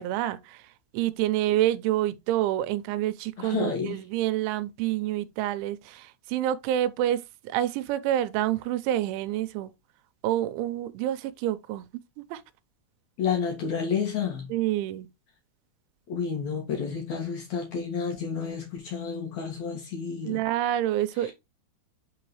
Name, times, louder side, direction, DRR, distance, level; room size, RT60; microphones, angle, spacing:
voice 1, 0.0-9.7 10.2-11.9 12.2-12.4 14.5-15.1 20.2-21.3, right 13 dB, 85° right, 2.9 m, -28 dB
voice 2, 3.4-4.0 13.2-14.5 16.1-20.4 21.2-21.3, left 6 dB, 65° left, 1.9 m, -30 dB
8.4 x 3.9 x 3.1 m
omnidirectional pair, 5.5 m